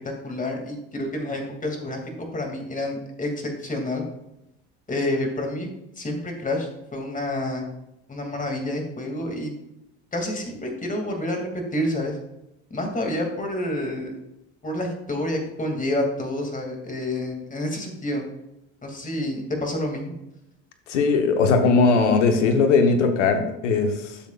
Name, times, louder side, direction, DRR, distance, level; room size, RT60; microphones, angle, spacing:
voice 1, 0.2-4.0 4.9-5.7 6.0-7.7 8.1-9.5 10.1-12.1 12.7-14.1 14.6-18.2 18.8-20.1, left 1 dB, 20° left, 2 dB, 2.5 m, -28 dB
voice 2, 20.9-24.2, left 4 dB, 85° left, 6 dB, 1.2 m, -19 dB
12.0 x 7.1 x 2.5 m, 0.88 s
hypercardioid pair, 75°, 35 cm